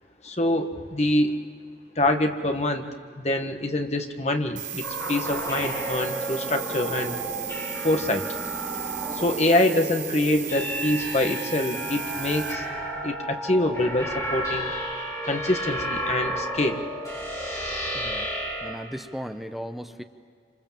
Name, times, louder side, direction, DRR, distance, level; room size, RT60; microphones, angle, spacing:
voice 1, 0.2-1.3 2.0-2.9 3.2-7.2 7.8-8.2 9.1-12.6 13.0-14.7 15.3-16.8, left 1 dB, 35° left, 5 dB, 1.6 m, -25 dB
sound 1, 4.5-12.5, right 10 dB, 90° right, 4.5 m, -36 dB
sound 2, 4.8-18.7, right 1 dB, 15° left, 5.4 m, -32 dB
voice 2, 17.9-18.3 18.6-20.0, equal, ahead, 7 dB, 0.9 m, -36 dB
26.5 x 26.5 x 7.5 m, 2.1 s
head